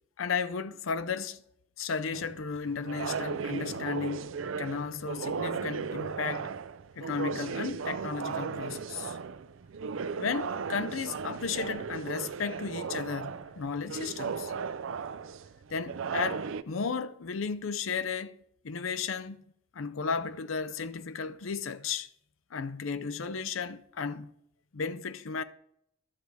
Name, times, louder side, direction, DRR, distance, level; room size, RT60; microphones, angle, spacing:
voice 1, 0.2-1.4 1.8-4.3 4.6-6.5 7.0-9.2 10.2-14.5 15.7-19.4 19.7-22.1 22.5-24.3 24.7-25.4, left 5 dB, 85° left, 0.6 m, -34 dB
sound 1, 2.1-16.6, right 5 dB, 80° right, 0.5 m, -36 dB
11.5 x 6.8 x 4.7 m
head